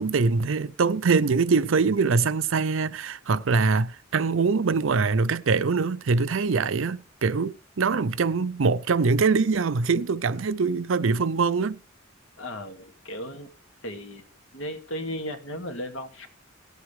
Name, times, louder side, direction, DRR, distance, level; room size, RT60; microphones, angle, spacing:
voice 1, 0.0-11.8, right 4 dB, 75° right, 0.6 m, -23 dB
voice 2, 12.4-13.5 13.8-14.2 14.5-16.3, equal, 70° left, 2.2 m, -35 dB
18.5 x 8.0 x 3.3 m
head